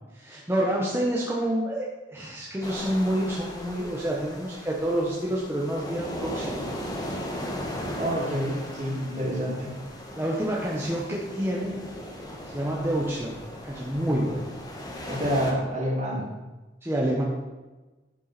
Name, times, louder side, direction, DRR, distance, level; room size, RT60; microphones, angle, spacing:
voice 1, 0.1-6.5 10.2-11.7 12.5-13.4 13.6-14.4 16.8-17.2, right 1 dB, 15° right, -4 dB, 1.2 m, -28 dB
sound 1, 2.6-15.5, equal, 20° left, 1.3 m, -37 dB
voice 2, 8.0-9.7 15.1-16.3, equal, 40° right, -2 dB, 2.5 m, -28 dB
11.5 x 7.3 x 4.3 m, 1.2 s
head